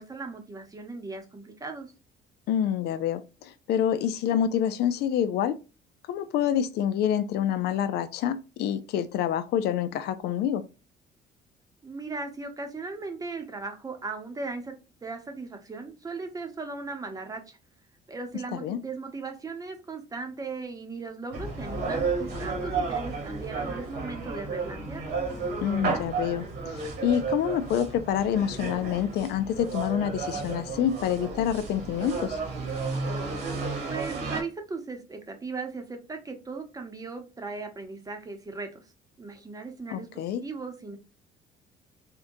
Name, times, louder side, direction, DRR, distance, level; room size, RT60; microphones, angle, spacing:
voice 1, 0.0-1.9 11.8-14.8 15.0-17.6 18.1-25.0 33.9-38.8 39.2-41.0, right 4 dB, 20° right, 0.8 m, -37 dB
voice 2, 2.5-5.6 6.1-10.6 18.5-18.8 25.6-26.8 27.0-32.4 39.9-40.4, left 9 dB, 75° left, 0.4 m, -27 dB
sound 1, 21.3-34.4, right 4 dB, 75° right, 1.3 m, -32 dB
3.7 x 2.2 x 2.6 m
cardioid pair, 110°, 17 cm